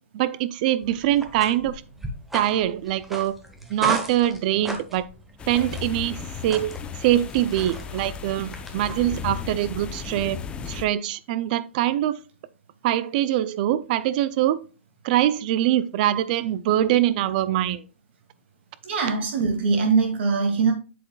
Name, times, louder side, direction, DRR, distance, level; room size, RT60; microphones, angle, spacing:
voice 1, 0.1-1.8 2.3-3.3 3.7-5.1 5.5-6.7 7.0-10.4 10.7-12.2 12.8-14.6 15.0-17.8, right 13 dB, 40° right, 0.4 m, -23 dB
sound 1, 0.8-9.3, equal, 5° right, 1.0 m, -37 dB
sound 2, 5.4-10.9, left 6 dB, 15° left, 0.6 m, -35 dB
voice 2, 18.8-20.7, right 4 dB, 60° right, 2.3 m, -22 dB
7.6 x 7.6 x 2.3 m
hypercardioid pair, 145°, 7 cm